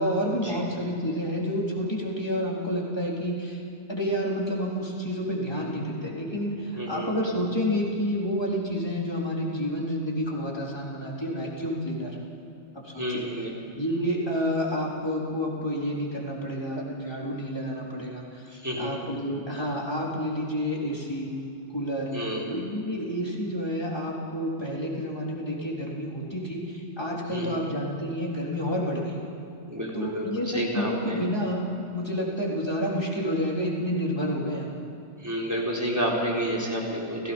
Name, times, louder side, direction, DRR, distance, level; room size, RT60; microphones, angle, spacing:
voice 1, 0.0-3.6 3.9-12.2 12.8-13.3 13.8-18.5 18.8-21.3 21.7-22.1 22.5-29.2 29.9-34.7, equal, 20° left, -3 dB, 3.8 m, -29 dB
voice 2, 6.8-7.1 13.0-13.5 18.5-18.9 22.1-22.4 27.3-27.6 29.7-31.2 35.2-37.3, equal, 15° right, -3 dB, 4.2 m, -30 dB
30.0 x 17.0 x 5.4 m, 2.8 s
omnidirectional pair, 1.2 m